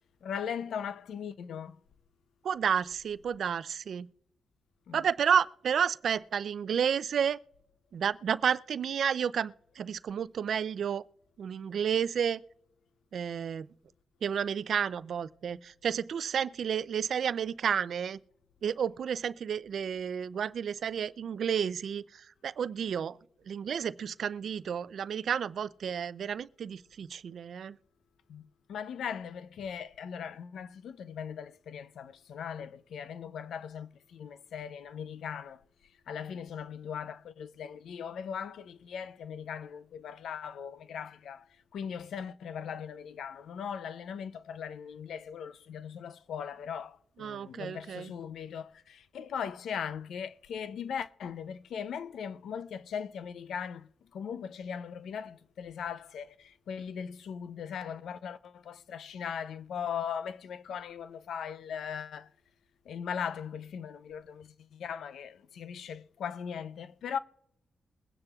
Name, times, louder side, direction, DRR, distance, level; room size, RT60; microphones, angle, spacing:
voice 1, 0.2-1.8 4.9-5.0 28.3-28.4 28.7-35.6 36.1-41.4 41.7-53.9 54.1-62.3 62.9-67.2, left 7 dB, 85° left, 0.5 m, -39 dB
voice 2, 2.4-4.1 4.9-7.4 7.9-11.0 11.4-12.4 13.1-13.7 14.2-18.2 18.6-22.0 22.4-23.2 23.5-27.8 47.2-48.1, right 8 dB, 70° right, 0.4 m, -31 dB
22.0 x 9.6 x 2.4 m
cardioid pair, 80°, 0 cm